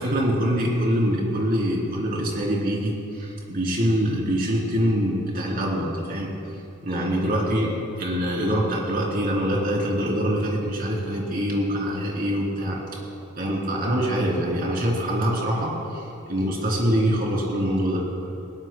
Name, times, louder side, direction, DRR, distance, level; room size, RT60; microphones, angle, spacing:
voice 1, 0.0-6.3 6.8-12.8 13.4-18.0, equal, 45° right, -3 dB, 3.3 m, -24 dB
21.0 x 17.0 x 2.3 m, 2.8 s
head